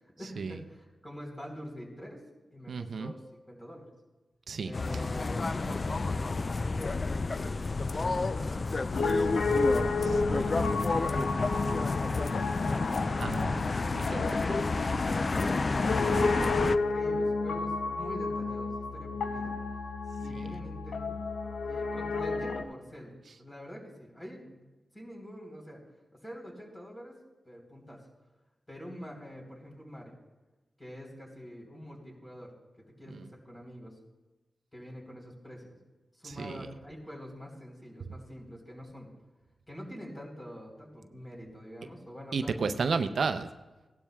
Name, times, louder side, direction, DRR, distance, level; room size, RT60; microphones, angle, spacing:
voice 1, 0.2-2.2 2.5-3.9 4.6-9.8 10.2-13.6 14.3-14.7 15.0-15.9 16.2-19.6 20.2-21.2 21.6-24.6 24.9-25.8 26.1-27.2 27.5-28.1 28.7-30.1 30.8-33.9 34.7-35.8 36.1-39.1 39.7-42.8, equal, 20° left, 0 dB, 3.7 m, -45 dB
voice 2, 2.7-3.1 4.5-4.7 13.2-13.5 13.9-14.3 36.2-36.6 42.3-43.5, right 5 dB, 75° right, 9 dB, 0.5 m, -31 dB
sound 1, 4.7-16.8, left 3 dB, 45° left, 0.4 m, -30 dB
Piano, 8.9-22.6, left 3 dB, 90° left, 0.7 m, -32 dB
17.0 x 12.0 x 2.3 m, 1.1 s
cardioid pair, 55°, 0 cm